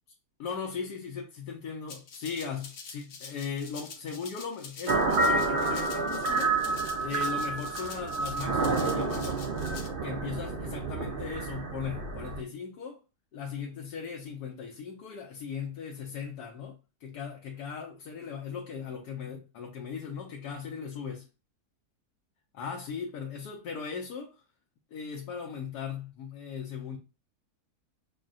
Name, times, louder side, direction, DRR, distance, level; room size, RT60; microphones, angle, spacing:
voice 1, 0.4-6.6 7.0-9.4 10.0-13.0 13.3-21.3 22.5-24.4 24.9-27.0, left 6 dB, 85° left, 1.3 m, -38 dB
Rattle (instrument), 1.9-9.9, left 5 dB, 60° left, 0.9 m, -46 dB
sound 1, 4.9-12.4, right 3 dB, 75° right, 0.5 m, -29 dB
6.3 x 2.2 x 2.5 m
omnidirectional pair, 1.7 m